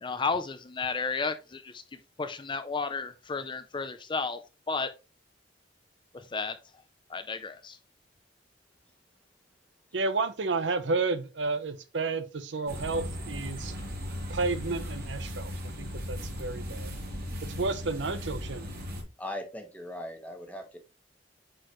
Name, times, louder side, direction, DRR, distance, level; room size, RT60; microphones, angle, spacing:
voice 1, 0.0-1.8 2.2-4.4 4.7-4.9 6.1-6.5 7.1-7.8, left 4 dB, 25° left, 0.5 m, -32 dB
voice 2, 9.9-13.7 14.3-16.9 17.4-18.8, right 3 dB, 70° right, 0.8 m, -31 dB
sound 1, 12.7-19.0, equal, 55° right, 3.2 m, -37 dB
voice 3, 19.2-20.8, left 1 dB, 10° left, 1.4 m, -39 dB
8.9 x 4.5 x 3.1 m
head